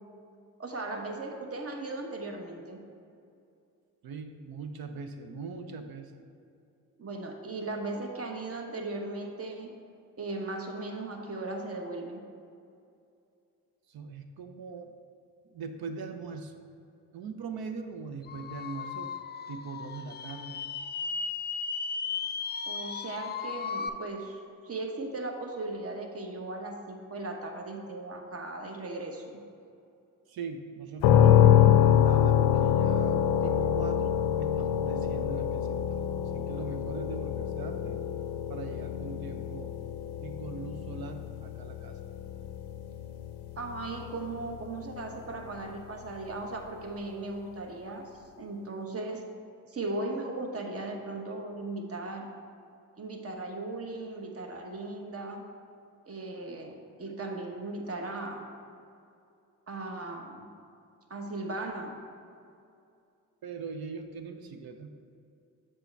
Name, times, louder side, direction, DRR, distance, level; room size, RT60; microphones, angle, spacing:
voice 1, 0.6-2.8 7.0-9.7 10.2-12.2 22.7-29.4 43.6-48.1 48.4-49.2 49.7-52.3 53.0-55.4 56.1-58.5 59.7-60.5 61.1-62.0, right 2 dB, 35° right, 2 dB, 1.1 m, -37 dB
voice 2, 4.0-6.1 13.9-15.0 15.5-16.6 17.1-19.1 19.5-20.6 30.3-38.0 38.5-39.8 40.2-42.0 63.4-64.9, right 5 dB, 65° right, 6 dB, 0.7 m, -41 dB
sound 1, 18.3-23.9, left 5 dB, 25° left, 0.4 m, -36 dB
sound 2, 31.0-44.8, left 10 dB, 80° left, 0.5 m, -25 dB
6.8 x 4.4 x 4.6 m, 2.6 s
supercardioid pair, 50°, 39 cm